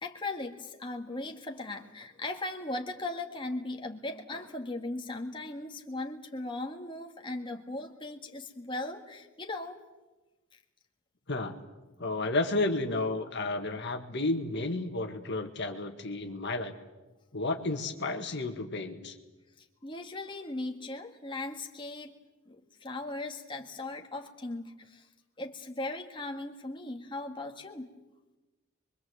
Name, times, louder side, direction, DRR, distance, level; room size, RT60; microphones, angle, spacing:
voice 1, 0.0-9.8 19.6-22.2 22.5-25.1 25.4-27.9, left 2 dB, 25° left, 2 dB, 1.8 m, -38 dB
voice 2, 11.3-11.6 12.0-16.7 17.3-19.2, left 2 dB, 55° left, 5 dB, 1.8 m, -32 dB
25.0 x 23.0 x 7.9 m, 1.1 s
head